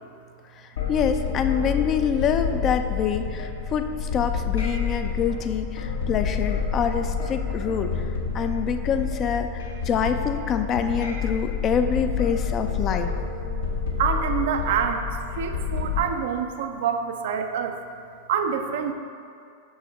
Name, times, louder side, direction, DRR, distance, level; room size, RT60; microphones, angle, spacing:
sound 1, 0.8-16.0, left 6 dB, 65° left, 0.9 m, -28 dB
voice 1, 0.9-8.0 8.3-13.1, left 7 dB, 30° left, 7 dB, 0.4 m, -26 dB
voice 2, 14.0-15.1 15.3-17.8 18.3-18.9, right 7 dB, 55° right, 6 dB, 0.4 m, -26 dB
6.4 x 6.1 x 3.4 m, 2.4 s
figure-of-eight pair, 90°, 0 cm